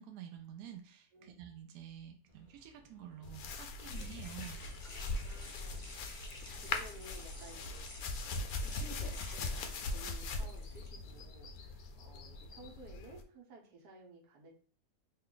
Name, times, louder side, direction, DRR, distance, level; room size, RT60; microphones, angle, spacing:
voice 1, 0.0-4.6, right 10 dB, 75° right, 4 dB, 1.0 m, -49 dB
voice 2, 1.1-1.4 3.9-4.1 4.8-6.3 6.6-14.5, right 2 dB, 90° right, -1 dB, 1.5 m, -55 dB
sound 1, 2.3-10.9, left 2 dB, 35° left, 0.5 m, -53 dB
sound 2, 3.2-13.2, left 3 dB, 70° left, 0.9 m, -41 dB
3.2 x 2.3 x 3.7 m, 0.43 s
omnidirectional pair, 1.7 m